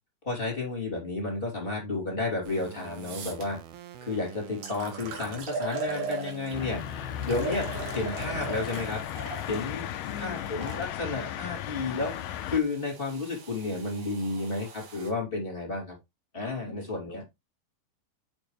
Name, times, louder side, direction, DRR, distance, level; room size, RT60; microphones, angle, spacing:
voice 1, 0.2-3.6 4.0-6.8 7.2-9.0 9.5-15.9 16.3-17.2, left 3 dB, 15° left, 2.6 m, -32 dB
sound 1, 2.5-2.6 3.0-3.4 4.1-4.2 4.6-6.7 7.2-10.8 11.7-15.1, right 4 dB, 60° right, 3.2 m, -39 dB
sound 2, 2.5-5.5 5.9-8.9, right 10 dB, 85° right, 3.0 m, -46 dB
sound 3, 6.5-12.6, left 11 dB, 75° left, 2.2 m, -35 dB
voice 2, 10.0-10.8 16.7-16.8 17.1-17.2, left 6 dB, 55° left, 3.1 m, -44 dB
7.9 x 6.9 x 3.2 m
omnidirectional pair, 4.1 m